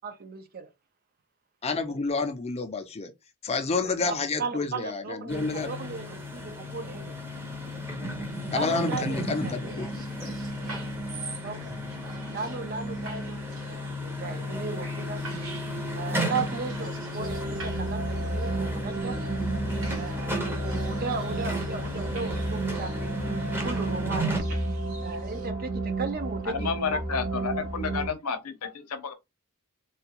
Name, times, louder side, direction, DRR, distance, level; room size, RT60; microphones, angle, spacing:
voice 1, 0.0-0.7 1.9-2.0 3.8-7.2 8.5-9.7 10.6-10.7 11.4-11.7 12.3-15.2 15.9-19.2 19.9-24.3 25.0-26.8, right 4 dB, 40° right, 0.5 m, -36 dB
voice 2, 1.6-3.1 3.4-5.7 8.5-9.9, left 4 dB, 30° left, 0.5 m, -29 dB
sound 1, 5.3-24.4, equal, 10° right, 0.7 m, -34 dB
sound 2, 8.3-25.5, right 3 dB, 60° right, 1.5 m, -47 dB
sound 3, 17.2-28.1, right 2 dB, 75° right, 1.2 m, -32 dB
voice 3, 26.4-29.1, left 5 dB, 85° left, 0.7 m, -31 dB
3.3 x 2.3 x 2.9 m
head